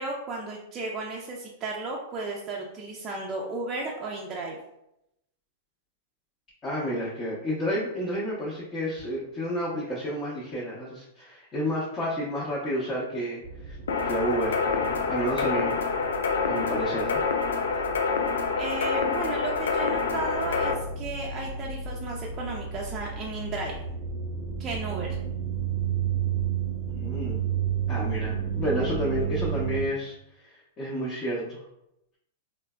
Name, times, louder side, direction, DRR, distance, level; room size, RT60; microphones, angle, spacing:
voice 1, 0.0-4.6 18.6-23.8 24.6-25.1, right 3 dB, 30° right, -2 dB, 0.4 m, -34 dB
voice 2, 6.6-13.8 14.0-15.8 16.5-17.2 17.7-17.8 26.9-27.4 27.9-30.1 30.4-31.6, equal, 30° left, -7 dB, 0.6 m, -30 dB
sound 1, 13.4-29.9, right 7 dB, 10° right, 0.8 m, -33 dB
sound 2, 13.9-20.7, left 5 dB, 85° left, 0.3 m, -27 dB
3.2 x 2.0 x 2.2 m, 0.84 s
hypercardioid pair, 120°, 0 cm